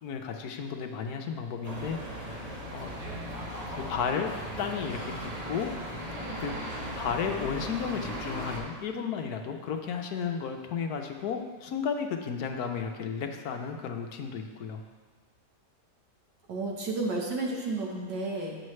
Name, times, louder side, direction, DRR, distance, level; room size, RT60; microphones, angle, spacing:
voice 1, 0.0-2.4 2.7-2.9 3.7-4.3 4.6-5.7 6.4-6.6 7.0-14.8, left 6 dB, 70° left, 4 dB, 1.1 m, -33 dB
sound 1, 1.6-8.6, equal, 25° right, 1.0 m, -37 dB
voice 2, 16.5-18.6, right 2 dB, 85° right, -1 dB, 1.9 m, -32 dB
8.9 x 7.1 x 3.2 m, 1.4 s
omnidirectional pair, 1.8 m